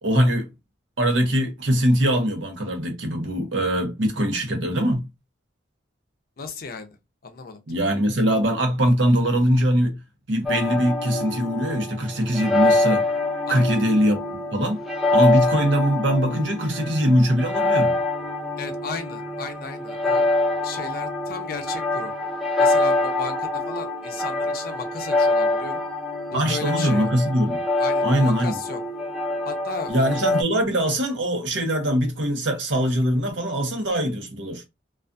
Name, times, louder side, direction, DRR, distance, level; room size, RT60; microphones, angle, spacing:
voice 1, 0.0-0.5 1.0-5.1 7.7-10.0 10.3-13.1 13.5-14.2 14.5-14.8 15.1-17.9 26.3-27.6 28.0-28.6 29.9-34.6, equal, 85° right, 0.8 m, -22 dB
voice 2, 6.4-7.0 7.2-7.6 13.5-13.8 18.6-20.3 20.6-22.1 22.6-25.8 26.3-27.1 27.8-28.8 29.5-30.0, left 4 dB, 50° left, 0.5 m, -35 dB
sound 1, 10.5-30.4, left 2 dB, ahead, 0.5 m, -25 dB
2.4 x 2.3 x 2.5 m
head